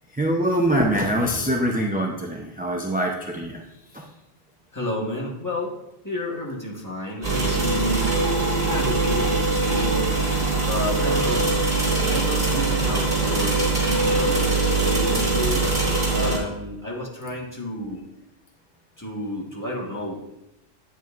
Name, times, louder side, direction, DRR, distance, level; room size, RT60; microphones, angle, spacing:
voice 1, 0.1-3.6 3.9-4.1, right 1 dB, 10° right, -1 dB, 0.4 m, -24 dB
voice 2, 4.7-5.8 6.0-8.1 8.7-10.2 10.6-11.5 11.8-14.5 14.8-15.7 16.1-18.0 19.0-20.2, left 1 dB, 15° left, -3 dB, 1.4 m, -30 dB
sound 1, 7.2-16.4, right 3 dB, 50° right, 2.6 m, -22 dB
9.1 x 8.4 x 2.5 m, 0.88 s
omnidirectional pair, 1.2 m